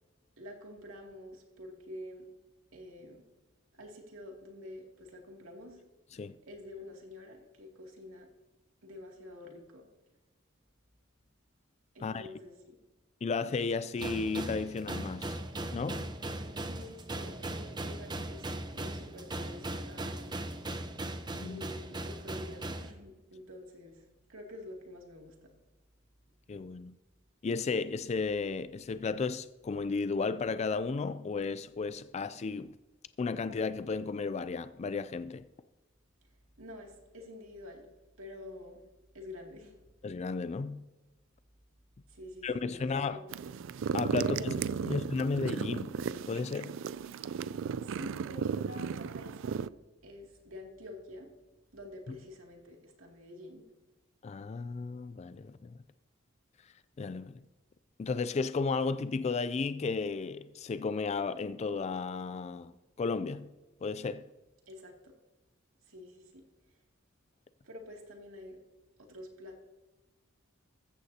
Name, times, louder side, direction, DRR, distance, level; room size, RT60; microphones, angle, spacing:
voice 1, 0.4-2.3 2.7-3.2 3.7-5.8 6.4-8.3 8.8-9.9 11.9-12.8 16.6-20.3 21.4-25.5 36.6-37.9 38.2-38.8 39.1-39.8 42.1-43.4 44.2-44.5 44.8-45.1 47.5-49.6 50.0-51.3 51.7-53.6 64.7-65.1 65.8-66.4 67.6-68.6 69.0-69.6, left 1 dB, 85° right, 2.5 m, -48 dB
voice 2, 13.2-15.4 15.7-16.1 21.3-21.6 26.5-27.0 27.4-32.7 33.2-35.4 40.0-40.8 42.4-43.2 43.9-44.5 44.9-46.0 46.3-46.8 52.1-52.2 54.2-55.8 57.0-57.4 58.0-63.5 63.8-64.3, left 4 dB, 35° left, 0.3 m, -34 dB
sound 1, 14.0-22.9, right 1 dB, 20° right, 0.8 m, -39 dB
sound 2, 43.3-49.7, right 6 dB, 65° right, 0.3 m, -35 dB
14.5 x 14.5 x 2.8 m
head